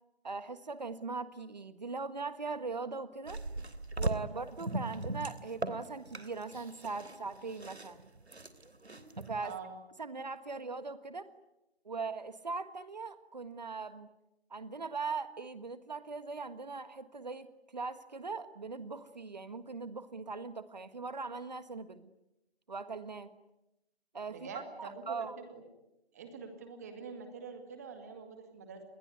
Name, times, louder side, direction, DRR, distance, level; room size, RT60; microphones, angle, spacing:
voice 1, 0.2-3.4 4.0-8.1 9.2-9.5 10.0-11.3 11.8-14.1 14.5-22.1 22.7-23.3 24.1-25.4, right 4 dB, 40° right, 12 dB, 1.6 m, -40 dB
sound 1, 3.3-9.5, right 2 dB, 80° right, 3.2 m, -39 dB
voice 2, 9.4-9.8 24.3-25.6 26.1-28.8, right 5 dB, 15° right, 6 dB, 2.3 m, -45 dB
29.5 x 21.5 x 9.5 m, 0.93 s
figure-of-eight pair, 165°, 32 cm